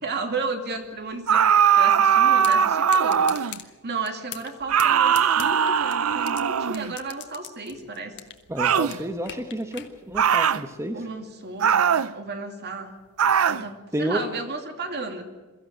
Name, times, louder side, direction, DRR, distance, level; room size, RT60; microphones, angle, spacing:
voice 1, 0.0-3.5 3.8-8.2 10.9-11.8 12.1-12.9 13.5-15.2, right 3 dB, 50° right, 5 dB, 2.6 m, -33 dB
sound 1, 1.3-3.6 4.7-7.0 8.6-9.0 10.2-10.6 11.6-12.1 13.2-13.6, right 8 dB, 80° right, 0.6 m, -20 dB
sound 2, 2.4-2.6 2.9-3.6 4.1-4.5 4.8-6.4 6.7-8.4 8.7-9.9, left 11 dB, 55° left, 1.6 m, -38 dB
voice 2, 8.5-11.1 13.9-14.2, right 1 dB, 15° right, 6 dB, 1.2 m, -30 dB
22.5 x 15.0 x 9.0 m, 1.3 s
head